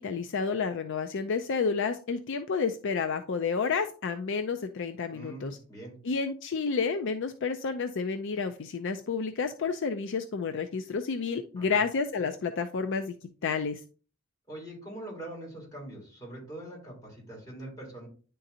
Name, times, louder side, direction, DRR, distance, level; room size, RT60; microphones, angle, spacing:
voice 1, 0.0-5.6 6.0-13.1 13.4-13.8, left 5 dB, 65° left, 8 dB, 0.5 m, -30 dB
voice 2, 5.1-5.9 11.6-11.8 14.5-18.1, right 1 dB, 20° left, -4 dB, 3.7 m, -43 dB
10.0 x 3.8 x 2.7 m, 0.38 s
head